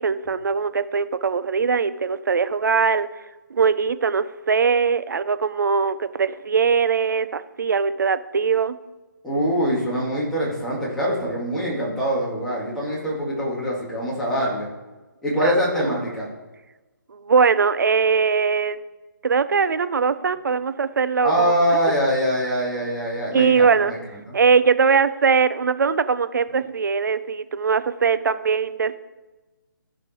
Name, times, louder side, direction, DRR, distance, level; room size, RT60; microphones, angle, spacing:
voice 1, 0.0-3.1 3.5-8.8 15.4-15.9 17.1-18.8 19.2-21.5 23.3-23.9 24.3-29.0, right 5 dB, 65° right, 13 dB, 0.7 m, -21 dB
voice 2, 9.2-14.7 15.2-16.3 21.2-23.7 24.3-24.4, equal, 5° left, -8 dB, 2.4 m, -23 dB
14.5 x 5.2 x 4.6 m, 1.1 s
hypercardioid pair, 160°, 11 cm